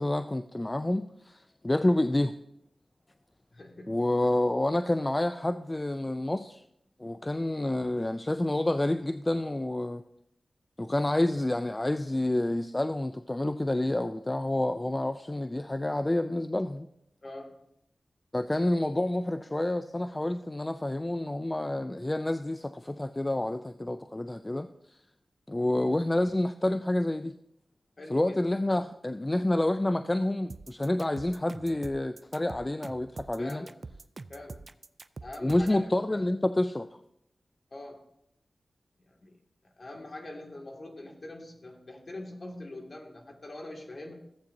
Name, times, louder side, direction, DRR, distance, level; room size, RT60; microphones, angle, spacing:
voice 1, 0.0-2.3 3.9-6.6 7.0-10.0 10.8-16.9 18.3-25.0 25.5-27.3 28.1-33.7 35.4-36.9, left 1 dB, 20° left, 9 dB, 0.4 m, -28 dB
voice 2, 3.5-3.9 17.2-17.5 28.0-28.4 33.4-33.8 34.3-34.7 35.2-36.3 37.7-38.0 39.0-39.4 39.8-44.1, left 2 dB, 50° left, 1 dB, 2.0 m, -43 dB
sound 1, 30.5-35.8, right 3 dB, 50° right, 0.4 m, -44 dB
14.5 x 8.3 x 2.6 m, 0.76 s
wide cardioid pair, 80°, 0 cm